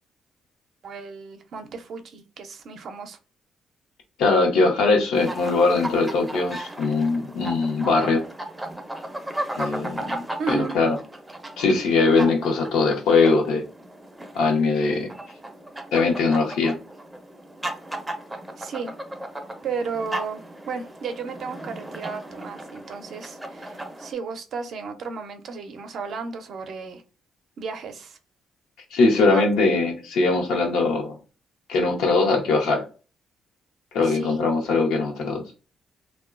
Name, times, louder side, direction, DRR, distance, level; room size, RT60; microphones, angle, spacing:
voice 1, 0.8-3.2 10.4-10.7 18.6-18.9 19.6-27.0 27.6-28.2 29.1-29.4 34.0-34.4, right 5 dB, 65° right, 0.5 m, -33 dB
voice 2, 4.2-8.2 9.6-11.0 11.6-13.6 14.3-15.1 15.9-16.7 28.9-31.2 31.7-32.8 33.9-35.4, left 3 dB, 85° left, 0.7 m, -21 dB
sound 1, 5.1-24.1, right 1 dB, 10° right, 0.5 m, -36 dB
2.9 x 2.2 x 2.4 m
cardioid pair, 90°, 0 cm